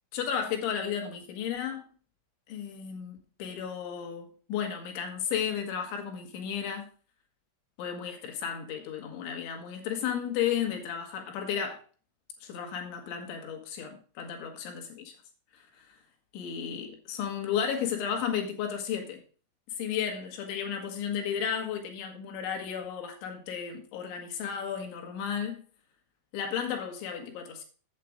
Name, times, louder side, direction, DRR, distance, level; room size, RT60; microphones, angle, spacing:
voice 1, 0.1-1.8 2.5-6.9 7.8-11.8 12.4-15.1 15.5-15.9 16.3-19.2 19.8-25.6 26.3-27.6, left 8 dB, 75° left, 3.7 m, -33 dB
8.4 x 7.7 x 4.9 m
omnidirectional pair, 5.6 m